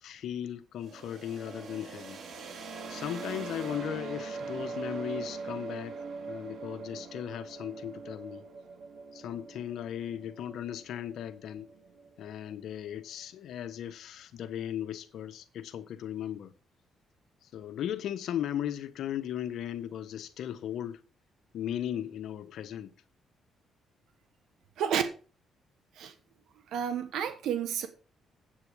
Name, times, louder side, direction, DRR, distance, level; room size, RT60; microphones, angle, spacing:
voice 1, 0.0-2.2 2.9-6.0 6.3-8.4 9.1-11.7 12.2-16.5 17.5-21.0 21.5-22.9, left 10 dB, 75° left, 1.1 m, -37 dB
sound 1, 0.8-12.5, right 4 dB, 60° right, 2.5 m, -42 dB
voice 2, 26.7-27.9, right 8 dB, 80° right, 1.3 m, -30 dB
8.6 x 8.4 x 4.8 m
cardioid pair, 90°, 0 cm